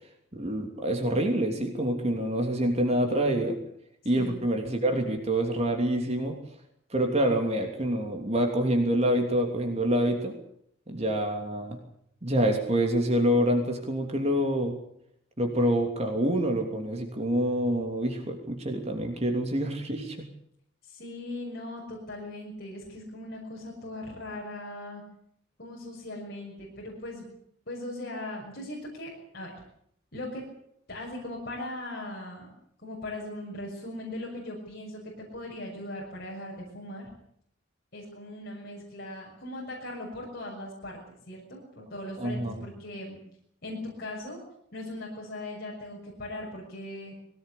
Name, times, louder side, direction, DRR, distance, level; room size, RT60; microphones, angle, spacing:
voice 1, 0.3-3.6 4.0-6.4 6.9-10.3 10.9-11.8 12.2-14.7 15.4-20.3 42.2-42.6, right 1 dB, 30° right, 3 dB, 3.1 m, -26 dB
voice 2, 20.8-25.0 25.6-27.3 27.7-29.5 30.1-30.4 30.9-32.5 32.8-37.1 37.9-43.2 43.6-44.4 44.7-47.1, left 1 dB, 55° left, -3 dB, 6.6 m, -39 dB
21.5 x 18.5 x 8.4 m, 0.70 s
head